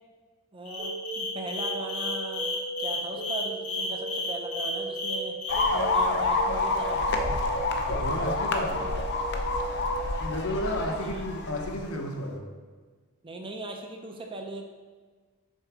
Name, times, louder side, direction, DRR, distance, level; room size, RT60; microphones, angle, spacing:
voice 1, 0.5-2.5 2.8-5.4 5.7-7.1 13.2-14.6, right 2 dB, 25° right, 3 dB, 0.5 m, -38 dB
sound 1, 0.6-5.7, left 3 dB, 90° left, 1.9 m, -32 dB
sound 2, 0.8-10.3, right 2 dB, 65° right, 1.1 m, -38 dB
sound 3, 5.5-11.9, left 2 dB, 50° left, 0.5 m, -28 dB
voice 2, 7.6-8.9 10.2-12.4, left 1 dB, 70° left, 2 dB, 1.0 m, -33 dB
6.5 x 3.7 x 4.8 m, 1.4 s
head